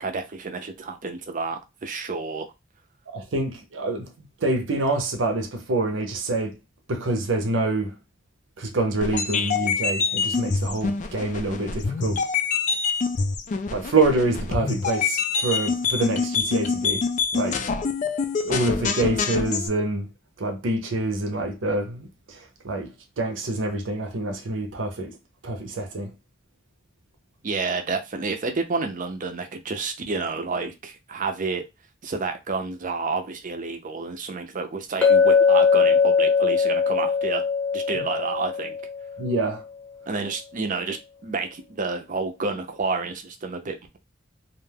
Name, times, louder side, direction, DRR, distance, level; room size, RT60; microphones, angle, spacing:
voice 1, 0.0-2.5 27.4-31.6 32.0-37.4 37.7-38.8 40.1-44.0, right 4 dB, 45° right, 0.5 m, -30 dB
voice 2, 3.1-6.5 6.9-8.0 8.6-12.3 13.7-17.7 18.4-20.1 20.4-25.2 25.4-26.1 37.9-38.0 39.2-39.6, right 2 dB, 85° right, 0.7 m, -26 dB
sound 1, 9.0-19.7, left 5 dB, 40° left, 0.4 m, -26 dB
Chink clink, 35.0-39.2, left 5 dB, 10° left, 0.8 m, -20 dB
2.5 x 2.3 x 3.3 m
head